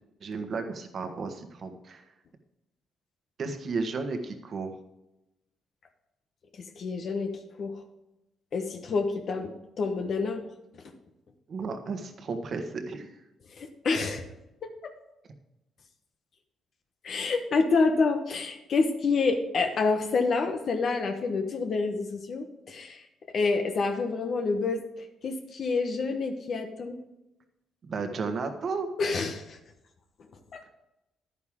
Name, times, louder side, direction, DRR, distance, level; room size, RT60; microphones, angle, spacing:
voice 1, 0.2-2.0 3.4-4.7 11.5-13.1 27.8-28.9, right 4 dB, 50° right, 6 dB, 1.4 m, -33 dB
voice 2, 6.7-7.3 7.6-7.8 8.5-10.4 13.6-14.2 14.6-14.9 17.0-23.0 23.3-24.8 25.2-27.0 29.0-29.6 30.5-30.6, left 4 dB, 55° left, 5 dB, 1.1 m, -28 dB
10.5 x 9.6 x 3.7 m, 0.92 s
cardioid pair, 90°, 0 cm